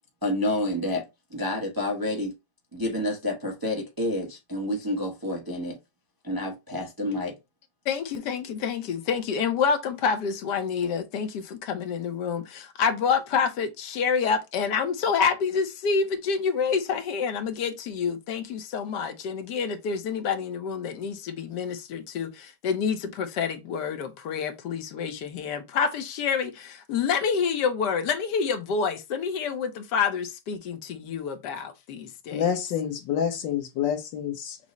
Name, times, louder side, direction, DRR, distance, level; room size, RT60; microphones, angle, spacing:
voice 1, 0.2-1.0 1.3-2.3 2.7-5.8 6.2-7.4, left 1 dB, 25° right, 0.5 m, -29 dB
voice 2, 7.9-32.5, left 6 dB, 70° left, 1.3 m, -28 dB
voice 3, 32.3-34.6, left 8 dB, 90° left, 1.6 m, -28 dB
6.1 x 2.0 x 3.9 m
omnidirectional pair, 1.9 m